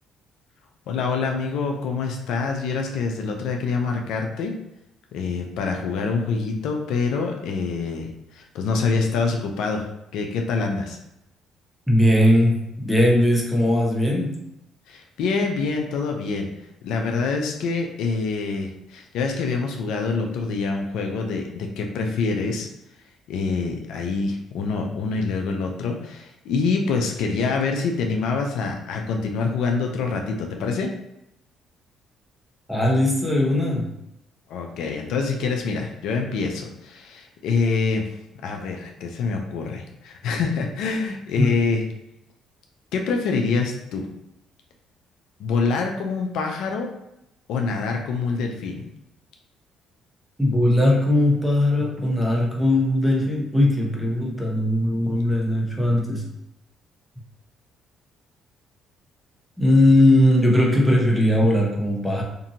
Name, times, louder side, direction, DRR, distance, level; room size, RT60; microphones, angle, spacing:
voice 1, 0.9-4.5 5.1-11.0 14.9-16.5 16.8-22.7 23.3-30.9 34.5-38.1 38.4-41.8 42.9-44.1 45.4-46.9 47.5-48.8, left 4 dB, 75° left, 2 dB, 0.4 m, -25 dB
voice 2, 11.9-14.3 32.7-33.9 41.4-41.5 50.4-56.2 59.6-62.2, left 1 dB, ahead, -2 dB, 0.8 m, -19 dB
2.6 x 2.5 x 2.7 m, 0.84 s
supercardioid pair, 65°, 0 cm